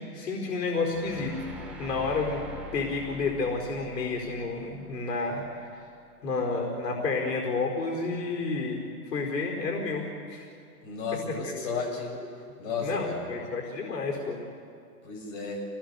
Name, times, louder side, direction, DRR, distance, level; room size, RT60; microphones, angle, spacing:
voice 1, 0.0-1.5 1.8-2.4 2.7-5.8 6.2-8.8 9.1-10.5 11.1-11.4 12.8-14.4, left 3 dB, 80° left, 0 dB, 4.7 m, -30 dB
sound 1, 0.9-6.0, left 2 dB, ahead, 3.3 m, -44 dB
voice 2, 10.8-12.2 12.6-13.3 15.0-15.6, left 4 dB, 40° left, 0 dB, 6.7 m, -33 dB
27.5 x 18.5 x 7.0 m, 2.4 s
hypercardioid pair, 140°, 48 cm